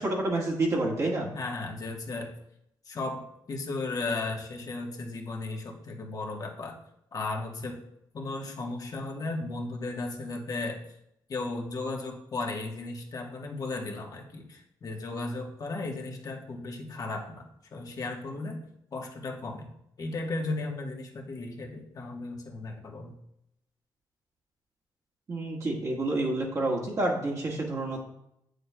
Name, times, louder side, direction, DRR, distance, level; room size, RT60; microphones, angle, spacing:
voice 1, 0.0-1.3 25.3-28.0, right 2 dB, 40° right, -2 dB, 1.7 m, -28 dB
voice 2, 1.3-2.3 2.8-6.8 7.1-7.8 8.1-10.8 11.3-18.6 18.9-19.7 20.0-23.2, left 3 dB, 50° left, 1 dB, 1.2 m, -35 dB
8.1 x 6.5 x 2.2 m, 0.78 s
cardioid pair, 95°, 8 cm